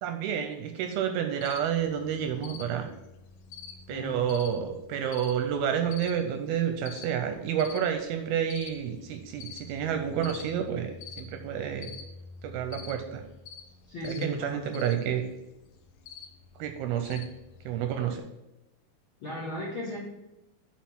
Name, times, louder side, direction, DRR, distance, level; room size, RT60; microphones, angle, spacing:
voice 1, 0.0-2.9 3.9-11.9 12.4-13.2 14.0-15.2 16.6-17.2 17.7-18.2, right 8 dB, 85° right, 6 dB, 2.3 m, -30 dB
Cricket, 1.4-18.2, left 5 dB, 80° left, 2.0 m, -47 dB
voice 2, 3.9-4.3 13.9-14.6 19.2-20.0, left 1 dB, 60° left, -5 dB, 1.3 m, -35 dB
7.4 x 4.3 x 6.0 m, 0.94 s
omnidirectional pair, 4.7 m